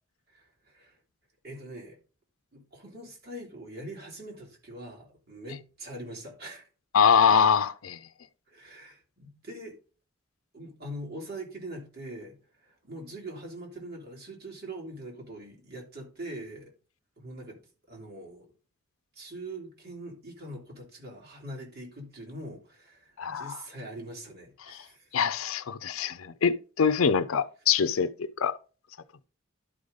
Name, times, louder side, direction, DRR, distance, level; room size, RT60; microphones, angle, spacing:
voice 1, 0.3-1.0 1.4-2.0 2.5-6.7 8.5-9.8 10.5-16.7 17.2-17.6 17.9-18.5 19.1-25.1, right 1 dB, 50° right, 2.9 m, -43 dB
voice 2, 6.9-8.0 23.2-23.6 24.7-24.8 25.1-28.6, left 6 dB, 85° left, 0.5 m, -24 dB
11.0 x 5.0 x 4.0 m
head